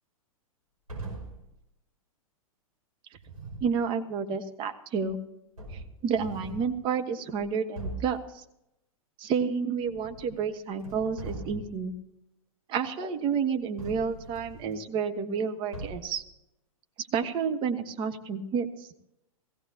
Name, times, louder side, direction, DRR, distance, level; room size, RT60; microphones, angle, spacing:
sound 1, 0.9-1.5 3.1-3.8 5.0-5.1 5.6-6.8 7.3-7.4 7.7-8.2 9.8-10.4 10.7-11.9 13.8-14.7 15.7-16.2, right 3 dB, 80° right, 5.4 m, -41 dB
voice 1, 3.6-5.2 5.7-8.4 9.2-11.9 12.7-16.2 17.0-18.9, right 6 dB, 25° right, 6 dB, 1.3 m, -30 dB
18.0 x 16.5 x 2.9 m, 0.82 s
figure-of-eight pair, 105°, 18 cm